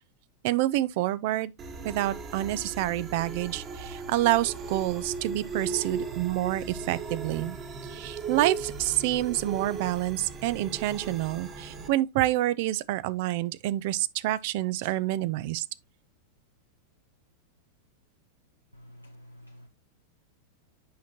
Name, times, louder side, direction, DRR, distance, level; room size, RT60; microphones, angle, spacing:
voice 1, 0.4-1.5 1.8-7.6 7.9-15.7, right 15 dB, 50° right, 0.5 m, -28 dB
sound 1, 1.6-11.9, right 4 dB, 30° right, 1.5 m, -38 dB
voice 2, 18.7-19.7, equal, 90° left, 0.7 m, -50 dB
8.5 x 5.7 x 2.9 m
figure-of-eight pair, 90°, 0 cm